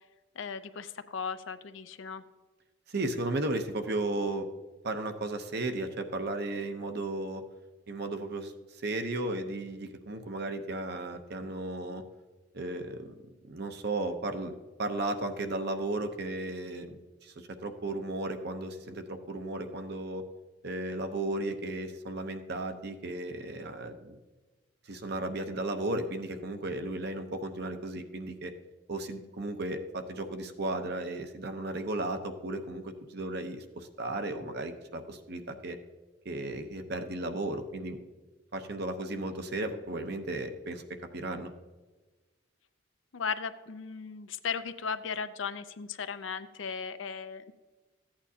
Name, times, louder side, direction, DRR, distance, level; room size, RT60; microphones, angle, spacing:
voice 1, 0.4-2.2 43.1-47.5, left 6 dB, 80° left, 11 dB, 0.6 m, -36 dB
voice 2, 2.9-4.5 4.8-7.4 7.9-12.0 12.5-13.2 13.4-14.5 14.8-20.2 20.6-24.2 24.8-28.5 28.9-35.8 36.2-38.0 38.5-40.8 41.1-41.5, right 2 dB, 55° right, 7 dB, 0.8 m, -35 dB
14.5 x 8.8 x 2.8 m, 1.3 s
head